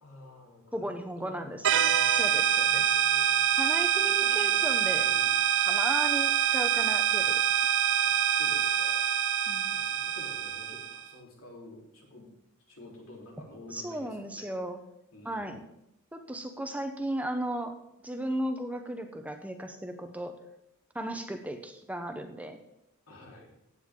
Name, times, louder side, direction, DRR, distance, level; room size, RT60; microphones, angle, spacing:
voice 1, 0.0-3.4 4.0-4.7 5.0-5.4 8.0-9.0 9.7-12.2 12.7-14.5 15.1-15.7 23.1-23.5, left 1 dB, 70° left, -2 dB, 3.6 m, -50 dB
voice 2, 0.7-3.0 3.6-5.1 5.6-7.5 9.5-9.8 13.7-14.8 15.2-15.6 16.1-17.7 18.0-20.4 20.9-22.6, right 1 dB, 5° right, 6 dB, 0.8 m, -35 dB
sound 1, 1.6-11.0, right 9 dB, 60° right, 0.6 m, -25 dB
15.0 x 9.0 x 3.7 m, 0.82 s
head